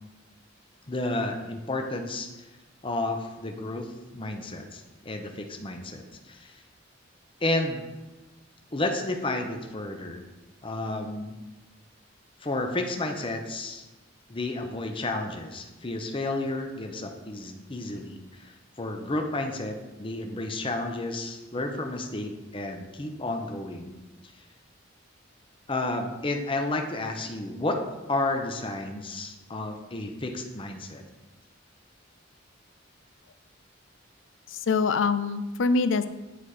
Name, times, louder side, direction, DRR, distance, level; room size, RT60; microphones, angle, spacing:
voice 1, 0.9-2.3 2.8-6.6 7.4-7.8 8.7-10.2 10.6-11.4 12.4-13.8 14.3-23.9 24.2-24.3 25.7-27.8 28.1-31.0, left 2 dB, 25° left, 4 dB, 0.8 m, -31 dB
voice 2, 34.5-36.1, left 4 dB, 70° left, 13 dB, 0.5 m, -24 dB
9.7 x 4.2 x 4.9 m, 1.1 s
head